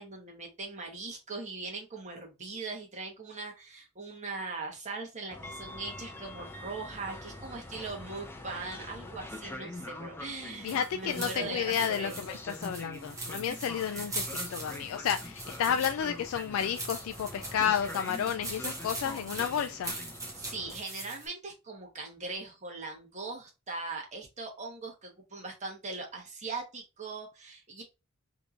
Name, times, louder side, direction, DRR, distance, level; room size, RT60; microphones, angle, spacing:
voice 1, 0.0-12.4 20.4-27.8, right 3 dB, 35° right, 1.2 m, -40 dB
Train, 5.3-20.8, left 2 dB, 10° left, 0.5 m, -44 dB
sound 1, 10.5-21.3, right 2 dB, 15° right, 1.1 m, -41 dB
voice 2, 10.6-19.9, left 8 dB, 75° left, 0.3 m, -31 dB
3.5 x 2.9 x 2.5 m
head